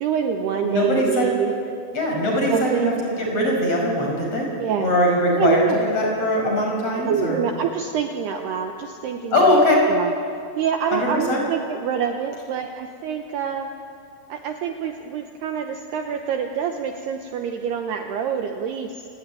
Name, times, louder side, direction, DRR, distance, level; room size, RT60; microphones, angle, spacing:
voice 1, 0.0-1.5 2.5-2.9 4.6-4.9 5.3-5.8 7.0-9.6 9.9-10.1 10.6-13.7 14.3-19.1, right 7 dB, 70° right, 4 dB, 2.7 m, -26 dB
voice 2, 0.6-1.3 1.9-4.5 4.8-7.4 9.3-9.8 10.9-11.4, left 1 dB, 30° left, 0 dB, 6.3 m, -21 dB
28.5 x 19.5 x 9.2 m, 2.4 s
omnidirectional pair, 5.6 m